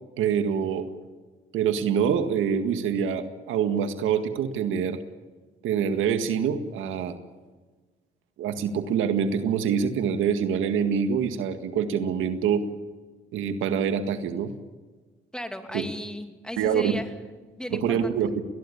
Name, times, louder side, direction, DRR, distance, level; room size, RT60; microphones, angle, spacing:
voice 1, 0.2-0.9 1.5-5.0 5.6-7.2 8.4-12.7 13.3-14.5 15.7-15.9 16.6-17.0 17.7-18.4, right 7 dB, 90° right, 8 dB, 1.9 m, -25 dB
voice 2, 15.3-17.1 17.6-18.1, equal, 5° left, 6 dB, 2.8 m, -35 dB
21.0 x 19.0 x 8.6 m, 1.3 s
cardioid pair, 90°, 20 cm